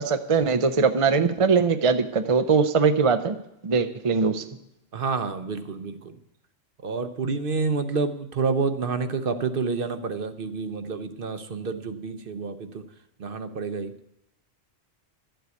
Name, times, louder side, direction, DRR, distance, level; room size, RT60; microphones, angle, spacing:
voice 1, 0.0-3.4 3.6-4.4, right 5 dB, 35° right, 9 dB, 0.6 m, -21 dB
voice 2, 4.9-6.2 6.8-12.8 13.2-13.9, right 4 dB, 50° right, 10 dB, 1.0 m, -28 dB
12.0 x 7.7 x 8.2 m, 0.81 s
omnidirectional pair, 1.2 m